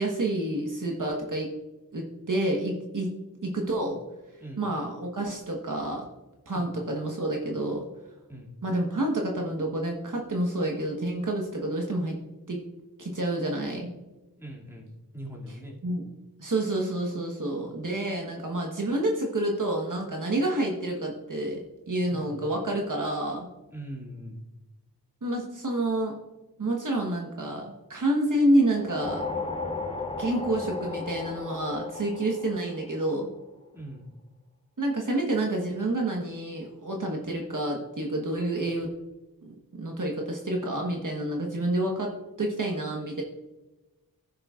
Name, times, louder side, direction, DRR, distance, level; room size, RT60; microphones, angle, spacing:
voice 1, 0.0-1.5 1.9-3.1 3.4-4.0 4.6-6.0 6.5-7.8 8.6-12.2 12.5-12.6 13.0-13.9 15.8-16.0 16.4-23.5 25.2-26.2 26.6-29.3 30.2-33.3 34.8-38.9 39.4-43.2, right 1 dB, 55° right, 0 dB, 1.4 m, -28 dB
voice 2, 14.4-15.8 22.1-22.4 23.7-24.4 33.7-34.1, equal, 5° right, -4 dB, 2.4 m, -41 dB
sound 1, 28.7-33.3, left 3 dB, 15° left, 0.9 m, -35 dB
16.0 x 6.5 x 2.5 m, 1.1 s
wide cardioid pair, 90°, 37 cm